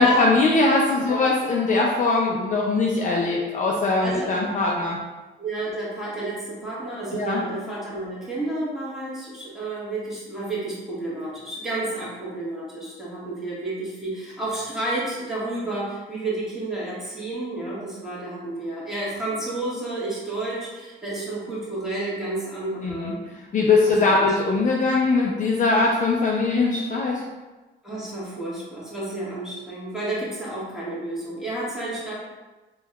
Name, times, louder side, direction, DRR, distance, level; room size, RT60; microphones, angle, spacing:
voice 1, 0.0-5.0 7.1-7.4 22.8-23.1 23.5-27.2, left 3 dB, 40° left, -2 dB, 0.4 m, -21 dB
voice 2, 4.0-4.3 5.4-23.2 23.9-24.3 27.8-32.1, right 2 dB, ahead, -8 dB, 1.1 m, -31 dB
3.3 x 2.2 x 2.2 m, 1.2 s
cardioid pair, 90°, 20 cm